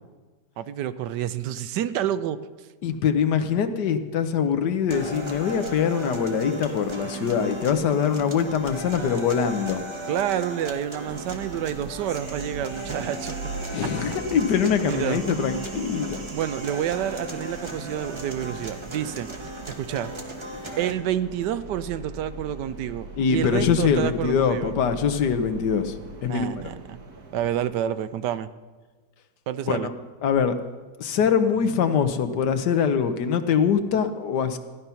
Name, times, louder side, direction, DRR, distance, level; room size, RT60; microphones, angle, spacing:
voice 1, 0.6-2.4 10.1-13.3 13.8-13.9 14.8-15.2 16.3-19.3 19.7-20.1 20.8-24.7 26.3-27.0 27.3-28.5 29.5-29.9, right 10 dB, 80° right, 13 dB, 1.3 m, -28 dB
voice 2, 2.8-9.8 13.7-16.3 23.2-25.9 26.2-26.5 29.7-29.8 30.2-30.6 31.0-34.6, left 7 dB, 75° left, 9 dB, 1.5 m, -23 dB
sound 1, 4.9-20.9, right 2 dB, 20° right, 1.0 m, -36 dB
sound 2, 11.0-27.6, right 3 dB, 65° right, 1.9 m, -41 dB
15.0 x 10.5 x 5.7 m, 1.3 s
omnidirectional pair, 1.8 m